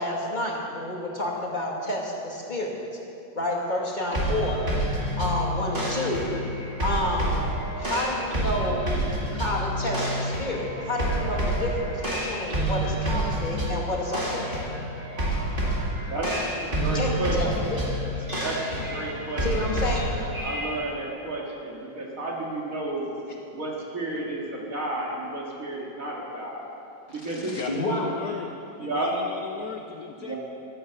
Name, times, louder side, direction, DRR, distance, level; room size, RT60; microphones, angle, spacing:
voice 1, 0.0-2.8 3.4-4.6 5.2-6.3 6.8-7.4 7.8-8.9 9.3-14.6 16.9-18.0 19.4-20.1 27.7-28.1, left 1 dB, 25° left, -2 dB, 2.0 m, -29 dB
sound 1, 4.1-20.8, right 1 dB, 30° right, 2.5 m, -28 dB
voice 2, 16.6-17.5 18.4-19.5 20.4-23.0 23.5-26.7 27.1-27.5 28.8-29.1 30.2-30.4, right 2 dB, 50° right, -3 dB, 2.7 m, -32 dB
voice 3, 27.1-30.4, left 6 dB, 65° left, 5 dB, 1.0 m, -37 dB
13.0 x 12.5 x 6.8 m, 2.8 s
omnidirectional pair, 1.9 m